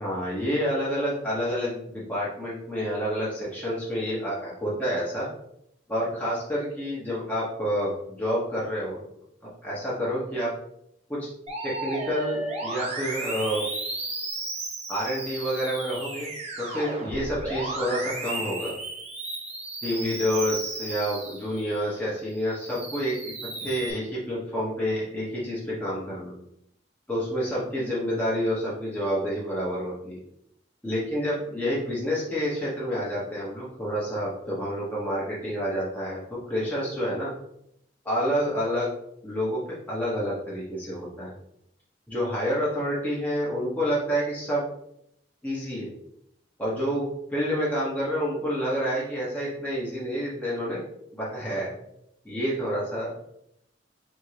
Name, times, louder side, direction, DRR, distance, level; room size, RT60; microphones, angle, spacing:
voice 1, 0.0-5.3 5.9-9.0 9.6-10.5 11.1-11.2 11.6-13.7 14.9-16.3 16.6-18.7 19.8-23.3 23.6-26.4 27.1-30.2 30.8-36.2 36.5-37.3 38.0-38.9 39.2-39.6 39.9-41.3 42.1-44.7 45.4-45.9 46.6-50.8 51.1-51.7 52.2-53.1, equal, 10° left, -7 dB, 1.1 m, -28 dB
Musical instrument, 11.5-21.9 22.3-23.9, right 2 dB, 35° right, 0.9 m, -34 dB
3.6 x 3.4 x 3.3 m, 0.76 s
head